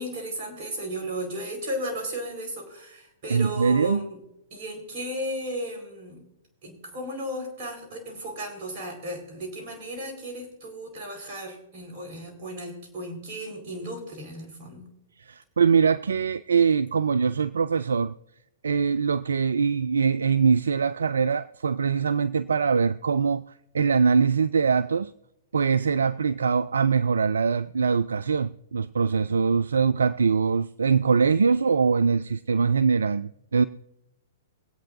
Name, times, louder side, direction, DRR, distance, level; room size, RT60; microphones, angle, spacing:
voice 1, 0.0-4.2 4.5-6.2 6.6-14.9, equal, 50° right, 4.4 m, -35 dB
voice 2, 3.3-4.1 15.2-18.1 18.6-23.4 23.7-25.1 25.5-33.6, right 5 dB, 80° right, 0.3 m, -23 dB
23.0 x 8.5 x 2.6 m
hypercardioid pair, 115°, 0 cm